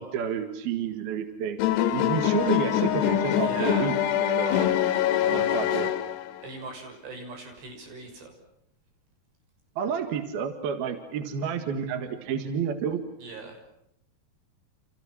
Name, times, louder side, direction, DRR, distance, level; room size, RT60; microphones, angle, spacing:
voice 1, 0.0-1.6 1.9-4.7 5.2-5.9 9.8-13.0, right 7 dB, 70° right, 7 dB, 3.5 m, -30 dB
sound 1, 1.6-6.5, left 11 dB, 80° left, 3.6 m, -24 dB
voice 2, 3.4-3.9 4.4-4.8 5.2-5.8 6.4-8.3 13.2-13.6, right 3 dB, 85° right, 5 dB, 8.6 m, -39 dB
30.0 x 29.5 x 6.1 m, 0.78 s
omnidirectional pair, 4.8 m